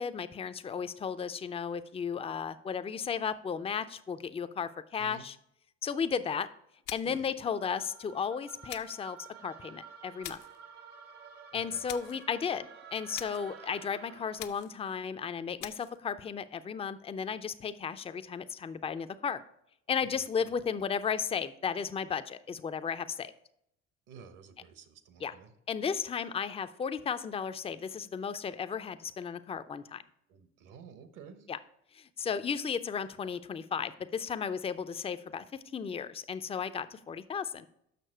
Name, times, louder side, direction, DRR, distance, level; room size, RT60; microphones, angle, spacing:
voice 1, 0.0-5.4 5.8-6.5 6.9-10.4 11.5-19.4 19.9-23.3 25.2-25.3 25.7-30.0 31.5-31.6 31.9-35.4 35.7-37.7, left 6 dB, 15° left, 12 dB, 0.4 m, -34 dB
sound 1, 6.9-7.3 8.7-9.1 10.2-10.6 11.9-12.2 13.1-13.5 14.4-14.8 15.6-16.0, left 13 dB, 65° left, 0.6 m, -44 dB
sound 2, 7.4-14.7, right 6 dB, 85° right, 1.0 m, -51 dB
voice 2, 11.5-11.9 20.2-20.5 24.1-25.5 30.3-31.5, right 5 dB, 55° right, 11 dB, 1.0 m, -51 dB
6.7 x 6.0 x 4.4 m, 0.75 s
hypercardioid pair, 60°, 37 cm